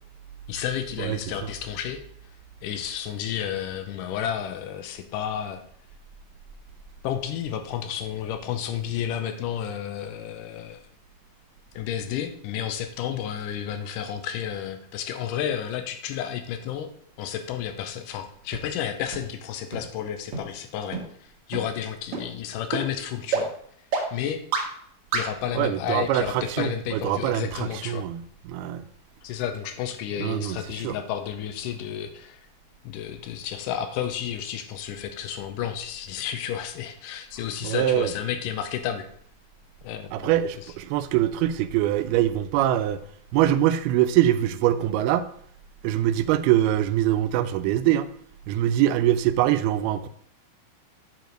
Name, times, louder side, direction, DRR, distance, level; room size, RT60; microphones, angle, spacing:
voice 1, 0.5-2.0 2.6-5.6 7.0-10.8 11.7-16.9 17.2-23.5 24.1-24.4 25.1-28.1 29.2-32.4 32.8-39.1 39.8-40.3 40.6-40.7, left 9 dB, 80° left, 1.9 m, -31 dB
sound 1, 18.5-18.6 19.1-19.2 19.7-19.8 20.3-20.4 20.9-21.0 21.5-21.6 22.1-22.2 22.7-22.8 23.3-23.4 23.9-24.0 24.5-24.6 25.1-25.2, right 5 dB, 60° right, 2.2 m, -26 dB
voice 2, 25.6-28.8 30.2-30.6 30.8-31.0 37.6-38.1 40.1-43.0 43.3-45.2 45.8-48.1 48.5-50.1, right 12 dB, 90° right, 2.5 m, -23 dB
7.8 x 4.7 x 5.1 m
omnidirectional pair, 4.4 m